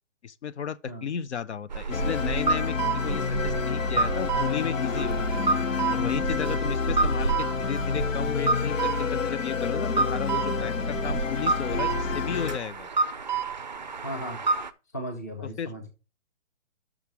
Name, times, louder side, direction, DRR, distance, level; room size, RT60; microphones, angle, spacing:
voice 1, 0.2-5.4 5.9-12.9 15.6-15.7, left 8 dB, 60° left, 0.6 m, -34 dB
sound 1, 1.7-14.7, right 4 dB, 40° right, 0.4 m, -30 dB
sound 2, 1.9-12.6, left 5 dB, 90° left, 1.0 m, -29 dB
voice 2, 14.0-14.4 14.9-15.9, equal, 15° left, 0.6 m, -36 dB
6.0 x 5.0 x 6.0 m
hypercardioid pair, 170°, 38 cm